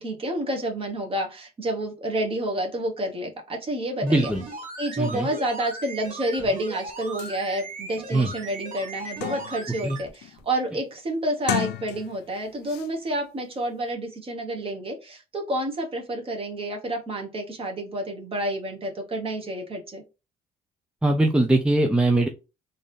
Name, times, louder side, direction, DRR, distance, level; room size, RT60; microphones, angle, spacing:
voice 1, 0.0-4.3 4.8-20.0, right 1 dB, 35° right, 3 dB, 1.3 m, -29 dB
voice 2, 4.0-4.4 5.0-5.3 8.1-8.3 9.8-10.0 21.0-22.3, right 2 dB, 5° right, 3 dB, 0.5 m, -21 dB
sound 1, 4.0-10.1 10.4-10.5, right 3 dB, 50° right, 1.1 m, -38 dB
sound 2, 6.9-7.0 7.2-7.4 7.9-8.0 8.4-9.7 10.1-10.5 11.3-12.3 12.7-12.9, left 15 dB, 75° left, 0.4 m, -33 dB
3.8 x 2.7 x 3.4 m, 0.29 s
cardioid pair, 110°, 17 cm